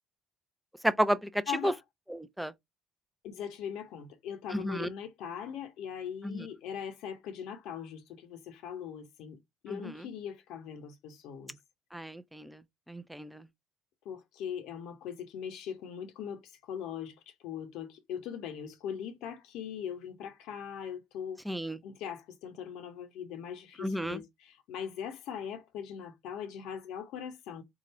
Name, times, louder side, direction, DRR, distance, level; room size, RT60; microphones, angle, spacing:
voice 1, 0.8-1.7 2.1-2.5 4.5-4.9 6.2-6.4 9.7-10.0 11.9-12.6 12.9-13.5 21.5-21.8 23.8-24.2, equal, 5° right, 0.6 m, -32 dB
voice 2, 1.5-1.8 3.2-11.6 14.0-21.4 21.8-27.6, left 8 dB, 70° left, 0.9 m, -40 dB
3.8 x 2.4 x 4.2 m
supercardioid pair, 75°, 0 cm